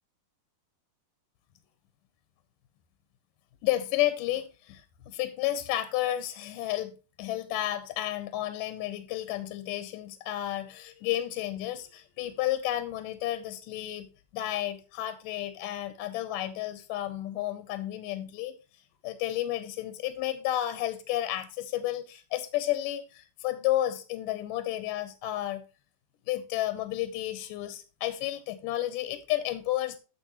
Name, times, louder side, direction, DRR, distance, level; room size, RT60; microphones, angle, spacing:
voice 1, 3.6-18.5 19.0-25.6 26.3-30.0, left 14 dB, 75° left, 2.1 m, -32 dB
10.0 x 7.2 x 2.9 m
omnidirectional pair, 4.3 m